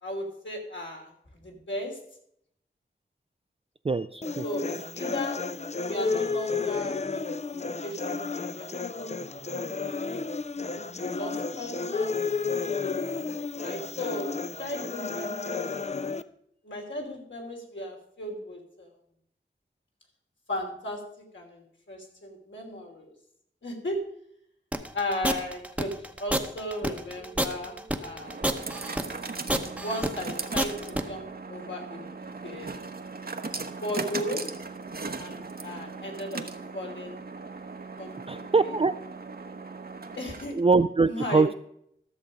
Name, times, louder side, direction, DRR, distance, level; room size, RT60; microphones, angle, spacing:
voice 1, 0.0-1.1 1.4-2.0 4.4-5.4 5.8-10.3 10.7-12.1 13.5-14.3 14.6-15.6 16.6-18.9 20.5-21.0 21.3-21.6 21.9-23.1 23.6-24.0 24.9-28.4 29.8-31.2 31.5-32.8 33.8-34.4 35.2-36.4 36.7-37.2 38.0-38.8 40.2-40.6 41.1-41.6, left 1 dB, 70° left, 0 dB, 3.0 m, -36 dB
voice 2, 3.8-4.4 38.3-38.9 40.5-41.5, right 4 dB, 30° right, 10 dB, 0.4 m, -23 dB
sound 1, 4.2-16.2, left 4 dB, 35° left, 0.5 m, -32 dB
sound 2, 24.7-31.0, right 1 dB, 5° right, 0.9 m, -28 dB
sound 3, 26.8-40.8, right 4 dB, 50° right, 0.9 m, -39 dB
13.0 x 7.0 x 5.1 m, 0.71 s
wide cardioid pair, 75°, 20 cm